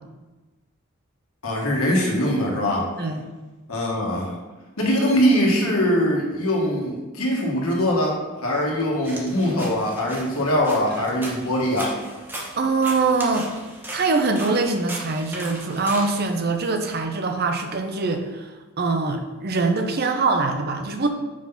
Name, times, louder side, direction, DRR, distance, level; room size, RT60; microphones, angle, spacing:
voice 1, 1.4-2.9 3.7-4.3 4.8-11.9, equal, 85° left, -2 dB, 1.4 m, -22 dB
sound 1, 9.0-16.7, right 1 dB, 10° right, 0.9 m, -37 dB
voice 2, 12.6-13.5 13.9-21.1, right 3 dB, 45° right, 5 dB, 0.6 m, -23 dB
5.0 x 3.8 x 5.6 m, 1.2 s
head